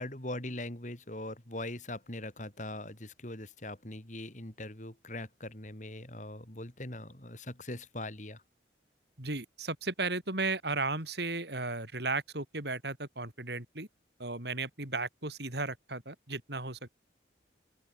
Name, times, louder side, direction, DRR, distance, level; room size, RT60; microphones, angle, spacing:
voice 1, 0.0-8.4, left 1 dB, 40° left, 3.6 m, -41 dB
voice 2, 9.2-13.9 14.2-16.9, right 3 dB, 65° right, 5.2 m, -35 dB
open air
head